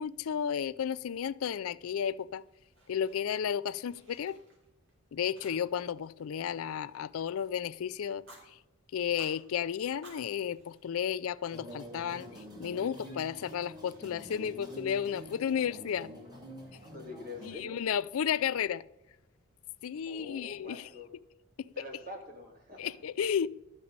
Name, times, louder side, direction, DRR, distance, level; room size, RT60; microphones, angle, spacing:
voice 1, 0.0-2.4 2.9-4.4 5.1-8.2 8.9-12.3 12.6-16.1 17.5-18.8 19.8-20.8 22.8-23.5, left 8 dB, 75° left, 0.4 m, -33 dB
Fire, 2.3-3.4 3.7-4.9 5.3-5.9 6.2-7.6 8.1-8.4 9.0-9.4 9.9-11.5, right 1 dB, 60° right, 4.1 m, -58 dB
sound 1, 11.5-17.5, equal, 20° right, 2.4 m, -47 dB
voice 2, 16.9-17.8 20.0-21.1 21.7-23.0, left 2 dB, 40° right, 2.6 m, -45 dB
13.0 x 5.4 x 8.6 m
head